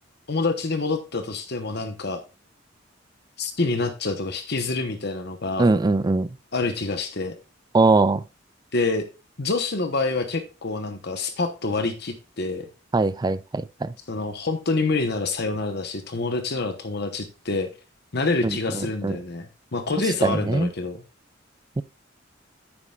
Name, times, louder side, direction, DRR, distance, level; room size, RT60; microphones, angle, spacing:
voice 1, 0.3-2.2 3.4-5.8 6.5-7.3 8.7-9.1 9.4-12.7 14.1-17.7 18.1-21.0, left 3 dB, 60° left, 1.0 m, -27 dB
voice 2, 5.6-6.3 7.7-8.2 12.9-13.9 18.4-19.2 20.2-20.7 21.8-21.9, right 3 dB, 20° right, 0.4 m, -21 dB
9.7 x 9.1 x 2.4 m
head